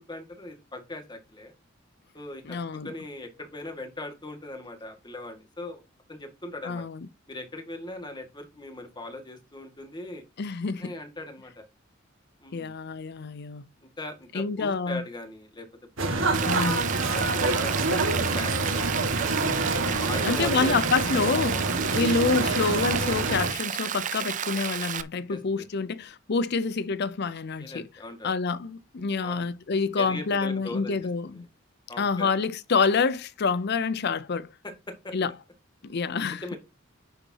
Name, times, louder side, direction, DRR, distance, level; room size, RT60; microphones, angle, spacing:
voice 1, 0.1-1.5 2.1-2.6 2.8-5.8 6.1-6.8 7.3-10.2 10.8-11.6 12.4-12.7 13.8-15.7 16.0-16.8 17.1-19.0 19.7-20.8 25.3-25.4 27.6-28.3 29.2-29.5 30.0-31.0 31.3-31.4 31.9-32.3 34.6-35.1 36.4-36.6, left 2 dB, 25° left, 1.9 m, -40 dB
voice 2, 2.4-2.9 6.6-7.1 10.4-10.9 12.5-13.6 14.3-15.0 16.4-16.9 17.9-18.3 20.2-27.9 28.2-31.5 32.0-34.5 35.1-35.3 35.8-36.5, left 4 dB, 55° left, 0.5 m, -27 dB
sound 1, 16.0-23.5, right 2 dB, 85° right, 1.9 m, -26 dB
Rain, 16.3-25.0, right 9 dB, 40° right, 0.5 m, -32 dB
10.0 x 7.0 x 2.9 m
head